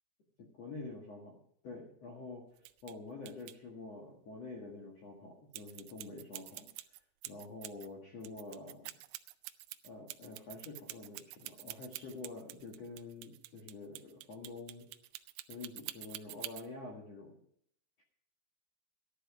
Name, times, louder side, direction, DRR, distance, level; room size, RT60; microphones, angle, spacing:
voice 1, 0.4-1.4 1.6-6.7 7.3-9.0 9.8-14.9 15.5-17.4 18.0-18.1, left 3 dB, 85° left, 0 dB, 1.4 m, -47 dB
sound 1, 2.6-2.9 3.3-3.5 5.5-7.9 8.2-16.7, right 18 dB, 85° right, 2.6 m, -46 dB
13.5 x 11.5 x 4.8 m, 0.67 s
omnidirectional pair, 5.9 m